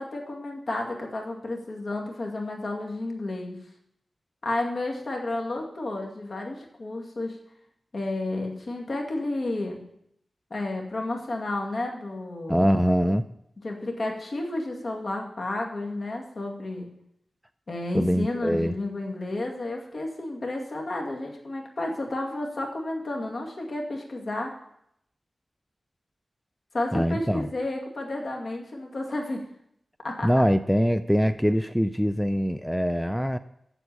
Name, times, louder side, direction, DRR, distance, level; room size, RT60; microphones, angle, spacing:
voice 1, 0.0-3.6 4.4-7.4 7.9-9.8 10.5-12.7 13.6-16.9 17.7-24.5 26.7-29.5 30.0-30.3, left 2 dB, 60° left, 1 dB, 2.3 m, -31 dB
voice 2, 12.5-13.2 17.9-18.7 26.9-27.5 30.2-33.4, equal, ahead, 11 dB, 0.4 m, -23 dB
8.0 x 7.2 x 8.4 m, 0.75 s
wide cardioid pair, 70°, 0 cm